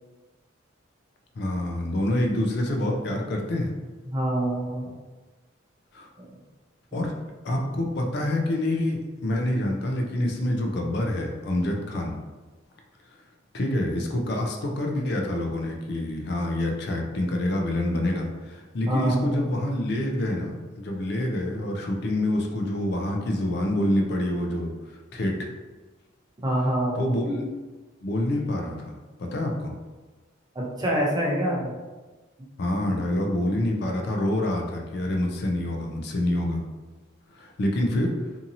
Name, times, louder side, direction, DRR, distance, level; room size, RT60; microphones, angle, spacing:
voice 1, 1.4-3.7 5.9-6.1 6.9-7.1 7.4-12.2 13.5-24.7 25.1-25.4 26.9-27.4 28.0-28.9 29.2-29.7 32.6-36.6 37.3-38.1, left 1 dB, 55° left, 1 dB, 0.4 m, -26 dB
voice 2, 4.0-4.8 6.2-6.3 18.9-19.5 26.4-27.1 30.6-31.7, right 1 dB, 20° right, -3 dB, 0.5 m, -26 dB
2.7 x 2.6 x 2.6 m, 1.2 s
head